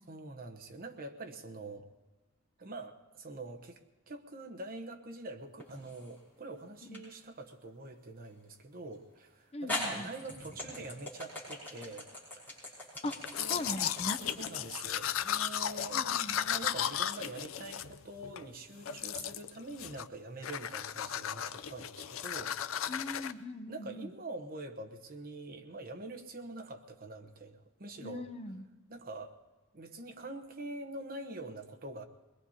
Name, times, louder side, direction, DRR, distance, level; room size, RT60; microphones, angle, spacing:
voice 1, 0.1-1.9 2.6-3.8 4.1-12.1 12.3-12.8 13.4-13.7 14.4-23.1 23.7-28.3 28.9-29.4 29.7-32.0, right 2 dB, 45° right, 4 dB, 1.0 m, -45 dB
sound 1, 5.6-6.2 6.9-7.1 8.9-9.0 9.7-15.9, left 1 dB, 10° left, 6.0 m, -40 dB
voice 2, 9.5-10.1 13.0-13.2 13.5-14.2 15.9-16.4 22.9-24.1 28.0-28.6, left 2 dB, 30° left, 8 dB, 0.7 m, -40 dB
Domestic sounds home sounds, 13.2-18.5 18.9-19.5 19.8-20.2 20.4-23.3, left 10 dB, 80° left, 0.5 m, -35 dB
22.5 x 21.0 x 2.8 m, 1.1 s
head